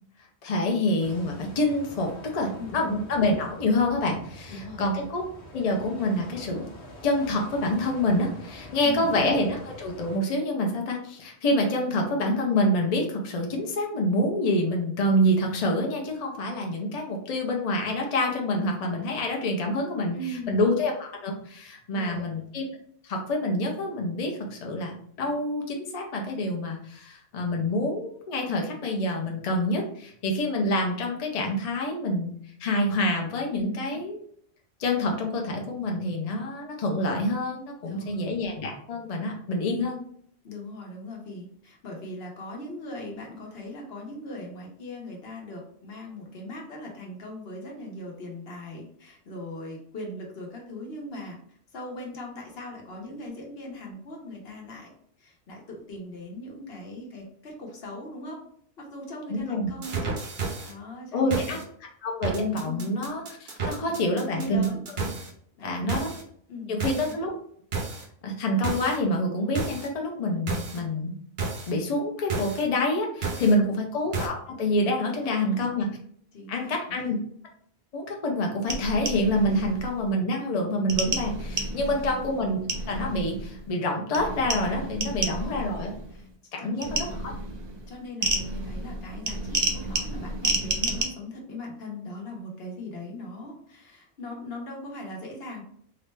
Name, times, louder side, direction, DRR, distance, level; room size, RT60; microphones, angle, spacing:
voice 1, 0.4-5.3 5.5-6.7 7.0-20.2 20.5-22.7 23.0-32.3 32.6-34.2 34.8-39.9 59.3-59.7 61.1-61.6 62.0-64.7 65.6-66.1 66.7-67.3 68.2-71.1 71.7-75.9 76.5-77.2 77.9-82.6 82.9-85.9 86.5-87.1, left 1 dB, 45° left, 1 dB, 0.6 m, -27 dB
sound 1, 1.0-10.2, left 1 dB, 90° left, 1.0 m, -45 dB
voice 2, 4.5-4.8 8.8-9.1 20.1-20.6 21.9-22.3 33.5-33.8 37.8-38.3 39.7-39.9 40.4-51.4 51.7-54.9 55.2-58.4 58.8-60.2 60.7-61.6 62.6-62.9 63.8-64.8 65.6-66.0 66.5-67.2 75.2-75.7 76.3-77.2 81.8-82.1 85.1-85.7 86.1-86.3 86.6-87.1 87.9-95.6, left 1 dB, 70° left, 0 dB, 1.1 m, -39 dB
sound 2, 59.8-60.7 61.3-61.6 62.2-65.3 65.9-66.2 66.8-67.1 67.7-68.0 68.6-69.0 69.6-69.9 70.5-70.8 71.4-71.7 72.3-72.6 73.2-73.5 74.1-74.3, right 4 dB, 65° right, 0.9 m, -31 dB
sound 3, 78.7-80.1 80.9-83.7 84.1-86.3 86.8-91.0, right 2 dB, 40° right, 0.4 m, -31 dB
3.8 x 2.1 x 3.2 m, 0.63 s
omnidirectional pair, 1.1 m